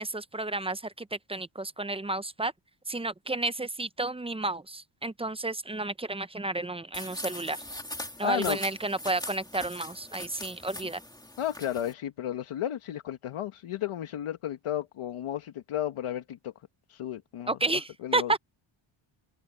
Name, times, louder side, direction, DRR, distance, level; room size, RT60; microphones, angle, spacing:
voice 1, 0.0-2.5 2.9-7.6 8.2-11.0 17.5-18.4, right 2 dB, 10° right, 0.5 m, -31 dB
sound 1, 6.9-11.9, left 1 dB, 10° left, 2.5 m, -41 dB
voice 2, 8.2-8.6 11.4-16.5 16.9-18.4, left 11 dB, 80° left, 1.3 m, -33 dB
open air
wide cardioid pair, 120°, 49 cm